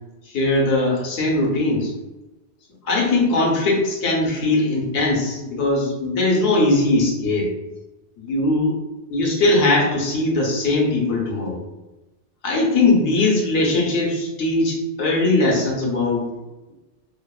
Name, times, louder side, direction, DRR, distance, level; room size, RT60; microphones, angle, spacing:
voice 1, 0.3-1.9 2.8-7.5 8.2-8.7 9.1-11.6 12.4-16.3, left 2 dB, 80° left, -2 dB, 1.0 m, -20 dB
2.9 x 2.0 x 2.3 m, 1.1 s
omnidirectional pair, 1.2 m